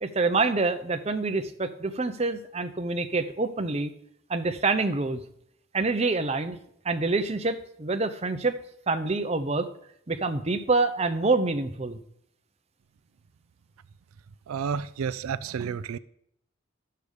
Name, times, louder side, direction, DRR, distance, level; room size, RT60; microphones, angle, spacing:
voice 1, 0.0-3.9 4.3-5.2 5.7-6.6 6.8-8.6 8.9-9.7 10.1-12.0, right 3 dB, 30° right, 7 dB, 0.7 m, -26 dB
voice 2, 14.5-16.0, right 6 dB, 85° right, 15 dB, 0.4 m, -31 dB
12.0 x 6.7 x 4.9 m, 0.71 s
head